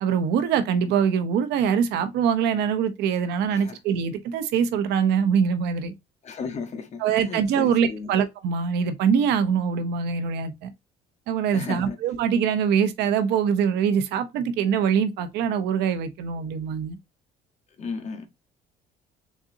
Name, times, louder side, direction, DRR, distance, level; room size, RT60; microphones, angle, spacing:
voice 1, 0.0-5.9 7.0-10.7 11.3-17.0, right 7 dB, 85° right, 0.7 m, -23 dB
voice 2, 6.2-7.0 7.3-8.1 11.5-12.0 17.8-18.3, left 5 dB, 40° left, 1.1 m, -34 dB
4.0 x 3.6 x 2.6 m
cardioid pair, 110°, 17 cm